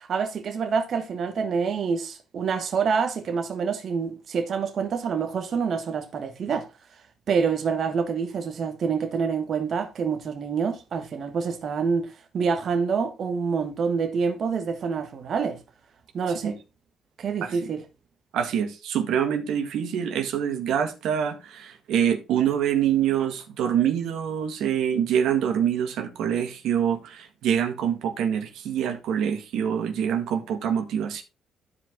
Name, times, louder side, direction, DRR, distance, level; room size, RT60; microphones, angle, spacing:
voice 1, 0.0-6.7 7.3-15.6 16.1-16.6 17.2-17.8, right 5 dB, 55° right, 1.5 m, -27 dB
voice 2, 18.3-31.2, right 9 dB, 85° right, 1.7 m, -25 dB
12.0 x 5.0 x 3.8 m
cardioid pair, 90°, 0 cm